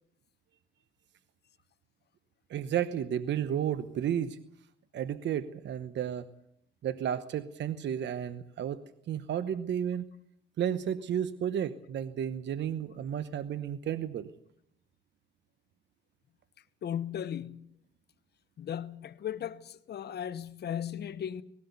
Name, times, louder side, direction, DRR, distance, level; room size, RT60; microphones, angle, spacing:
voice 1, 2.5-4.4 4.9-6.3 6.8-10.1 10.6-14.3, right 9 dB, 65° right, 1.0 m, -32 dB
voice 2, 16.8-17.6 18.6-21.4, left 9 dB, 55° left, 1.0 m, -36 dB
19.0 x 17.0 x 8.3 m
cardioid pair, 90°, 20 cm